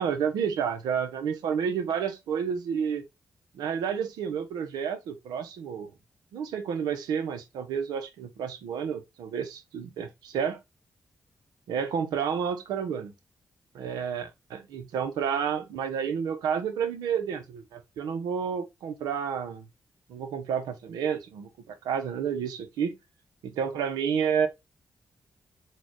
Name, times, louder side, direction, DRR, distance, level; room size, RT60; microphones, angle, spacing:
voice 1, 0.0-3.1 3.5-5.9 6.3-10.6 11.7-13.1 13.7-19.7 20.1-23.0 23.4-24.5, right 7 dB, 90° right, 0.6 m, -30 dB
4.1 x 2.2 x 3.0 m
supercardioid pair, 45°, 7 cm